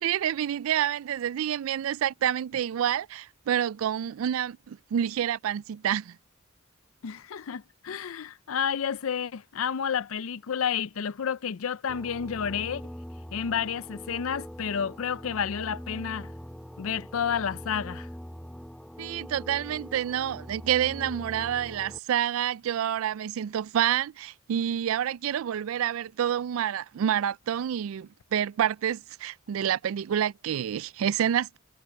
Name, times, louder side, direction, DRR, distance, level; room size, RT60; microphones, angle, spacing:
voice 1, 0.0-6.2 19.0-31.6, right 10 dB, 75° right, 0.3 m, -28 dB
voice 2, 7.0-12.8 13.3-16.3 16.8-18.1, left 7 dB, 75° left, 0.5 m, -30 dB
sound 1, 11.9-22.0, equal, 5° left, 0.8 m, -42 dB
head